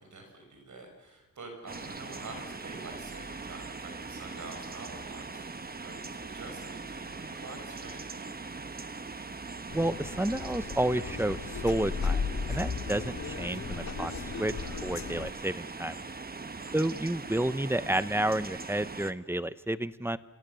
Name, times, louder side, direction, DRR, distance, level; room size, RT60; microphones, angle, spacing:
voice 1, 0.0-8.3 16.6-16.8, right 2 dB, 70° right, 3 dB, 6.3 m, -47 dB
sound 1, 1.7-19.1, right 4 dB, 30° right, 1.1 m, -41 dB
sound 2, 9.7-15.3, left 5 dB, 60° left, 2.0 m, -35 dB
voice 2, 9.7-16.0 16.7-20.2, right 1 dB, 10° right, 15 dB, 0.8 m, -31 dB
29.5 x 27.0 x 7.0 m, 1.2 s
wide cardioid pair, 120°, 30 cm